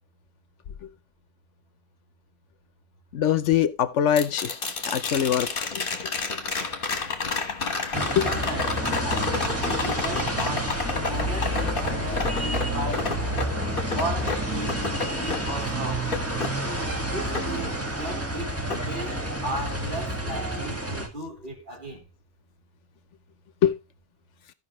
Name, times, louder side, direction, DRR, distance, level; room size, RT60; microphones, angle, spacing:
voice 1, 3.1-4.5 4.9-5.7 8.2-8.3 23.6-23.7, left 9 dB, 75° left, 1.0 m, -22 dB
sound 1, 4.2-18.3 18.7-19.7 22.0-22.1, left 4 dB, 45° left, 1.5 m, -31 dB
sound 2, 7.9-21.1, right 1 dB, 10° right, 1.5 m, -29 dB
voice 2, 8.2-13.2 13.9-14.8 15.1-16.2 17.1-18.5 18.8-22.0, right 1 dB, 40° right, 3.5 m, -36 dB
15.0 x 5.6 x 3.0 m
omnidirectional pair, 1.2 m